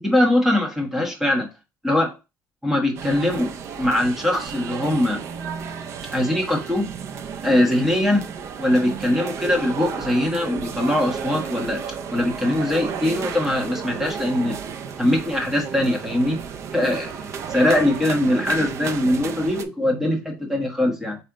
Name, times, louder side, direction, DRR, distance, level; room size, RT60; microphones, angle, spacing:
voice 1, 0.0-1.5 1.8-2.1 2.6-3.5 3.8-5.2 6.1-6.9 7.4-8.2 8.6-11.8 12.1-14.6 15.0-16.4 16.7-21.2, left 1 dB, 5° right, 1 dB, 1.3 m, -21 dB
sound 1, 3.0-19.6, right 6 dB, 45° right, 0.5 m, -33 dB
4.2 x 3.2 x 3.8 m, 0.27 s
cardioid pair, 135°, 7 cm